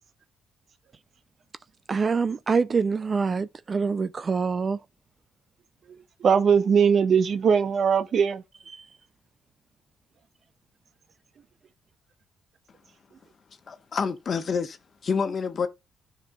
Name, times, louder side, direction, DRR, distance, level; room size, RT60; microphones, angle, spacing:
voice 1, 1.9-4.8 8.7-8.9, right 5 dB, 40° right, 0.5 m, -25 dB
voice 2, 6.2-8.4, right 6 dB, 55° right, 0.9 m, -20 dB
voice 3, 13.7-14.8 15.0-15.7, left 5 dB, 45° left, 1.3 m, -27 dB
13.0 x 5.1 x 2.4 m
cardioid pair, 90°, 0 cm